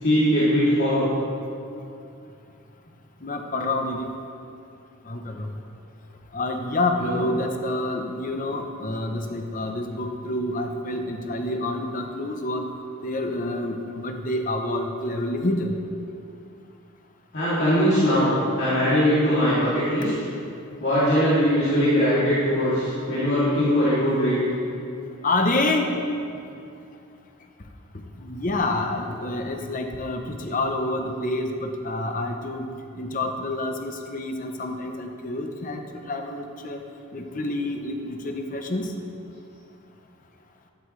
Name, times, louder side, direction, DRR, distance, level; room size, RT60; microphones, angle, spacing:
voice 1, 0.0-1.0 7.0-7.3 17.3-20.2 20.8-24.4, equal, 55° left, -12 dB, 2.9 m, -21 dB
voice 2, 3.2-4.1 5.1-5.5 6.3-12.7 13.0-15.7 25.2-25.9 28.2-32.7 33.0-36.8 37.1-38.9, left 2 dB, 40° left, 4 dB, 0.8 m, -28 dB
13.0 x 11.5 x 3.3 m, 2.5 s
head